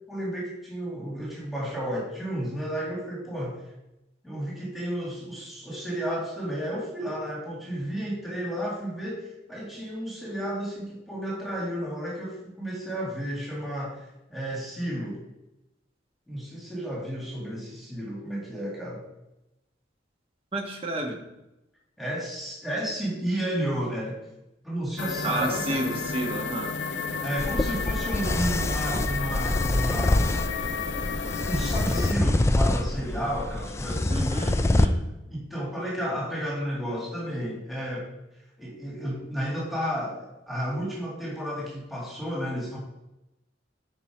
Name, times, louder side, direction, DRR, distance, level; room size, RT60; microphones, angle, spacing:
voice 1, 0.1-3.6 4.2-15.2 16.3-19.0 22.0-24.2 24.6-25.9 27.2-30.3 31.4-34.4 35.3-38.1 38.6-42.8, equal, ahead, -5 dB, 2.2 m, -32 dB
voice 2, 20.5-21.2 25.2-26.7 34.1-35.0, right 1 dB, 30° right, 1 dB, 1.4 m, -30 dB
sound 1, 25.0-32.1, left 5 dB, 65° left, 0.6 m, -32 dB
sound 2, 27.4-34.9, left 1 dB, 15° left, 0.3 m, -26 dB
9.7 x 4.4 x 4.9 m, 0.93 s
head